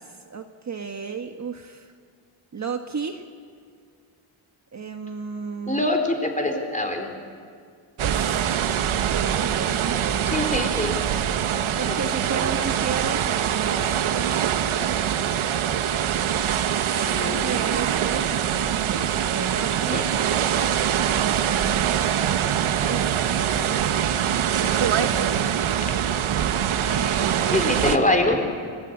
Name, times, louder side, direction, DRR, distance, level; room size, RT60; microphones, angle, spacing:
voice 1, 0.0-1.9 2.5-3.2 4.7-5.9 8.0-8.4 9.1-10.3 11.8-14.5 16.9-20.1 20.9-21.9 22.2-25.7 26.8-28.2, right 5 dB, 35° right, 5 dB, 1.3 m, -34 dB
voice 2, 5.7-7.1 10.3-11.0 11.9-12.0 17.1-17.5 19.9-20.0 25.4-25.5 27.5-28.4, left 2 dB, 15° left, 3 dB, 4.1 m, -24 dB
sound 1, 8.0-28.0, right 9 dB, 80° right, 1.4 m, -23 dB
29.0 x 17.0 x 9.8 m, 2.1 s
wide cardioid pair, 120°, 49 cm